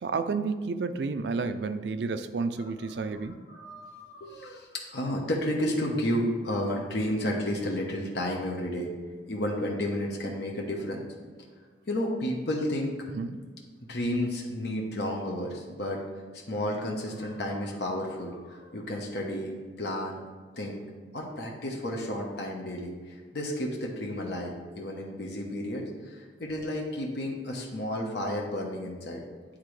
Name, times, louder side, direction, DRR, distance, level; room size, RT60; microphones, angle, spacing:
voice 1, 0.0-3.4 13.1-13.4, right 4 dB, 70° right, 10 dB, 0.4 m, -31 dB
voice 2, 3.0-8.9 9.3-11.0 11.9-13.0 13.9-16.0 16.3-19.5 19.8-20.2 20.6-20.8 21.1-29.2, left 1 dB, 65° left, -1 dB, 0.8 m, -32 dB
9.6 x 3.7 x 3.2 m, 1.5 s
head